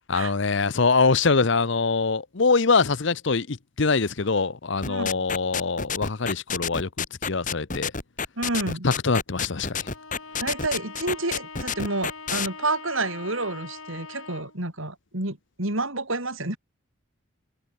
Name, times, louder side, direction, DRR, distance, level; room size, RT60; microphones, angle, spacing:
voice 1, 0.1-6.9 7.2-7.9 8.8-9.9, left 4 dB, 55° left, 0.8 m, -23 dB
sound 1, 4.8-12.5, left 6 dB, 40° left, 2.4 m, -29 dB
voice 2, 4.8-5.3 8.4-8.9 10.4-16.6, right 2 dB, 70° right, 4.9 m, -29 dB
Bowed string instrument, 9.8-14.6, left 4 dB, 75° left, 6.5 m, -42 dB
head